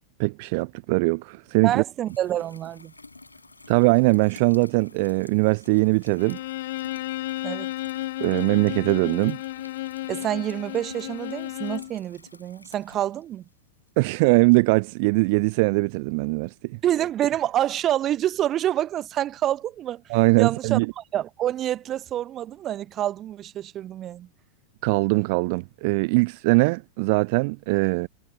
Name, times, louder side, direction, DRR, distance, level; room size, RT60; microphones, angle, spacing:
voice 1, 0.2-1.8 3.7-6.4 8.2-9.4 14.0-16.8 20.1-20.9 24.8-28.1, right 28 dB, 45° right, 0.5 m, -21 dB
voice 2, 1.6-2.9 7.4-7.7 10.1-13.4 16.8-20.0 20.4-24.3, right 12 dB, 30° right, 0.9 m, -27 dB
sound 1, 2.1-13.9 15.4-15.5 20.3-20.4, left 3 dB, 80° left, 7.9 m, -51 dB
Bowed string instrument, 6.2-12.0, left 16 dB, 55° left, 0.5 m, -33 dB
figure-of-eight pair, 90°, 0 cm